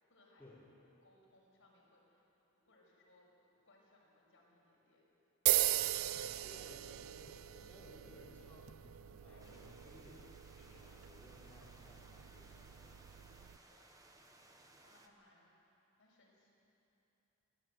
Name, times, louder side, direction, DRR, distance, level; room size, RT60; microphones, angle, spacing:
voice 1, 0.1-0.6 1.0-2.2 2.5-5.0 5.5-6.7 9.3-9.6 10.5-10.8 11.2-11.6 12.8-15.5 16.0-16.5, left 2 dB, 60° left, -4 dB, 6.2 m, -69 dB
sound 1, 5.5-13.6, right 14 dB, 65° right, 0.4 m, -39 dB
voice 2, 5.7-10.3 10.6-13.1, left 1 dB, 10° left, -8 dB, 4.1 m, -60 dB
sound 2, 9.4-15.1, right 2 dB, 15° right, 1.3 m, -63 dB
21.5 x 16.5 x 9.3 m, 2.9 s
head